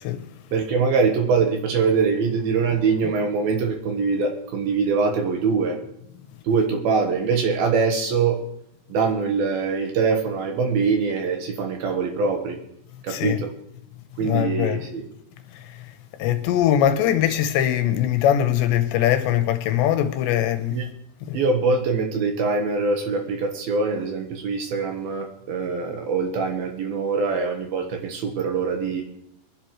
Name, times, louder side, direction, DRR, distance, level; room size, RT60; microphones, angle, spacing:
voice 1, 0.5-5.8 6.4-8.4 8.9-12.6 13.0-13.5 14.2-15.1 20.7-20.9 21.3-29.0, right 4 dB, 65° right, 2.7 m, -23 dB
voice 2, 13.1-13.4 14.2-14.8 15.5-15.6 16.2-20.8 21.3-21.4, left 11 dB, 80° left, 2.9 m, -21 dB
23.0 x 11.0 x 3.1 m
omnidirectional pair, 5.3 m